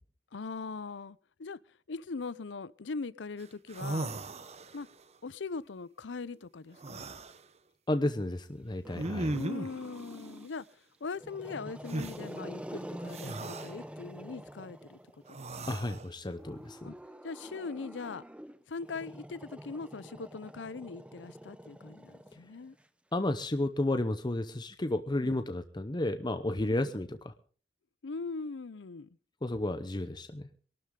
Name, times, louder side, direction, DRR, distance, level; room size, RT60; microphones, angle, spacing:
voice 1, 0.3-4.1 4.7-4.9 5.2-7.1 9.3-10.6 11.0-15.0 15.4-15.8 16.8-16.9 17.2-18.2 18.7-22.8 25.2-25.4 28.0-29.1, left 4 dB, 75° left, 0.6 m, -41 dB
sound 1, 3.4-3.5 3.7-4.9 6.8-7.4 8.9-9.8 11.9-12.2 13.1-13.7 15.3-16.1, right 2 dB, 35° right, 0.9 m, -37 dB
voice 2, 7.9-9.3 15.7-16.9 23.1-27.3 29.4-30.5, left 1 dB, 25° left, 0.8 m, -32 dB
Growling, 8.8-10.6 11.1-15.3 16.3-22.8, equal, 5° right, 0.9 m, -46 dB
22.5 x 12.5 x 3.8 m
head